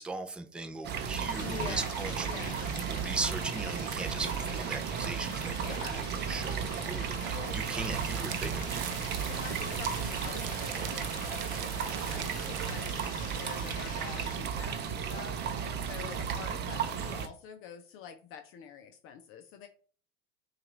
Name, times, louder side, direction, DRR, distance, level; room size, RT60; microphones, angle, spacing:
voice 1, 0.0-9.2, right 3 dB, 5° right, 6 dB, 0.3 m, -39 dB
sound 1, 0.8-17.3, right 7 dB, 30° right, 0.7 m, -34 dB
sound 2, 1.3-14.4, left 3 dB, 25° left, 1.3 m, -46 dB
voice 2, 1.4-1.9 2.2-2.7 5.5-6.2 7.3-7.6 9.2-19.7, left 7 dB, 40° left, 6 dB, 0.6 m, -46 dB
sound 3, 6.3-15.1, right 10 dB, 90° right, 0.6 m, -44 dB
5.6 x 2.5 x 3.1 m, 0.40 s
hypercardioid pair, 110°, 32 cm